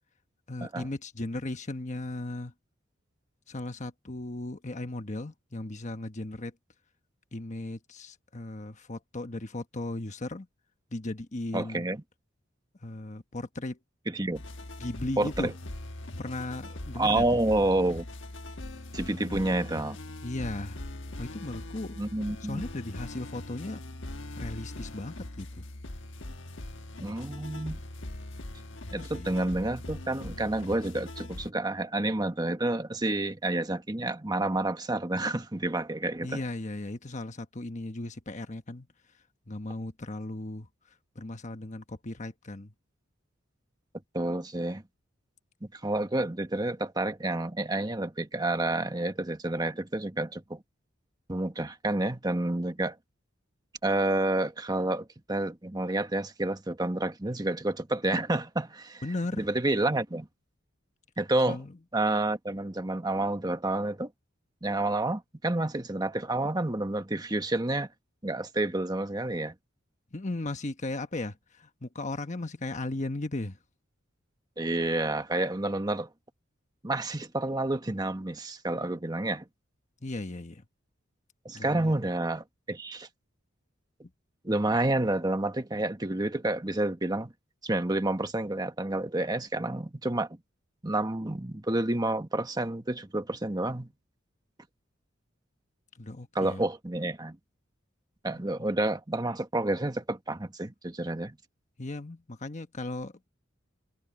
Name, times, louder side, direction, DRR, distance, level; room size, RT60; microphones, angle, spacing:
voice 1, 0.5-2.5 3.5-6.5 7.3-10.5 10.9-11.9 12.8-13.8 14.8-15.5 16.2-17.2 20.2-20.9 21.2-22.0 22.4-23.8 24.4-25.6 28.9-29.3 36.2-38.9 39.5-40.7 41.1-42.7 59.0-59.5 61.5-61.7 70.1-73.6 80.0-80.6 81.5-81.9 95.9-96.6 101.8-103.3, left 2 dB, 35° left, 1.2 m, -36 dB
voice 2, 11.5-12.0 14.1-14.4 15.2-15.5 17.0-18.1 18.9-20.0 22.0-22.6 27.0-27.8 28.9-36.4 44.1-44.8 45.7-50.6 51.3-53.0 53.8-59.0 59.4-60.3 61.2-61.6 61.9-64.1 64.6-67.9 68.2-69.5 74.6-76.1 76.8-79.4 81.4-83.1 84.4-87.3 87.6-90.3 90.8-93.9 96.3-97.4 98.2-101.4, right 2 dB, 20° right, 1.4 m, -29 dB
sound 1, 14.3-31.5, left 1 dB, 65° left, 1.4 m, -41 dB
head